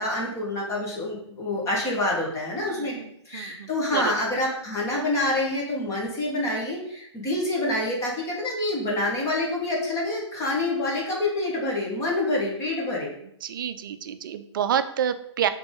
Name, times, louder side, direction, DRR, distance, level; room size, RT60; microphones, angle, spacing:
voice 1, 0.0-2.9 3.3-13.1, left 2 dB, 20° left, -3 dB, 1.6 m, -27 dB
voice 2, 2.6-4.1 13.4-15.5, right 9 dB, 45° right, 11 dB, 0.5 m, -29 dB
5.8 x 3.8 x 5.3 m, 0.72 s
figure-of-eight pair, 120°, 15 cm